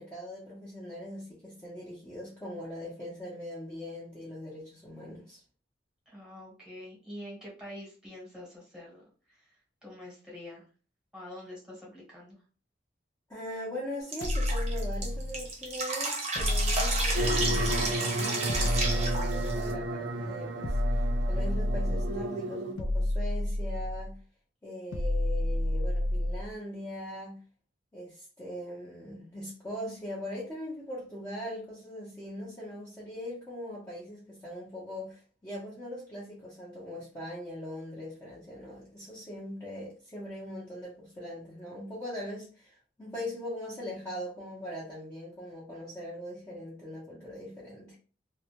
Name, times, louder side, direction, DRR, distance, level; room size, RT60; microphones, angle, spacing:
voice 1, 0.0-5.4 13.3-24.2 24.6-27.4 27.9-48.0, left 1 dB, 15° left, 0.6 m, -41 dB
voice 2, 6.1-9.5 9.8-10.6 11.1-12.4, left 1 dB, 5° right, 1.0 m, -46 dB
Drip, 14.1-19.7, right 2 dB, 35° right, 0.7 m, -32 dB
sound 1, 14.2-15.5 16.4-18.0 18.5-19.9 20.6-22.2 22.8-24.2 24.9-26.5, left 1 dB, 85° left, 0.4 m, -30 dB
sound 2, 17.2-22.7, right 2 dB, 85° right, 0.5 m, -33 dB
2.3 x 2.1 x 2.9 m
head